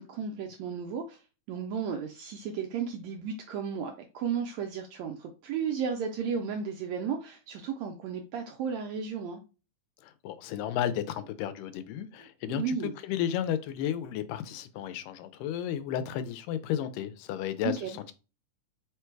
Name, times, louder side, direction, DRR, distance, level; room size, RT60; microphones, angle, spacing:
voice 1, 0.0-9.4 12.5-12.9 17.6-18.0, right 6 dB, 80° right, 1.6 m, -34 dB
voice 2, 10.0-18.1, left 10 dB, 85° left, 2.2 m, -33 dB
5.0 x 2.2 x 4.5 m
omnidirectional pair, 3.7 m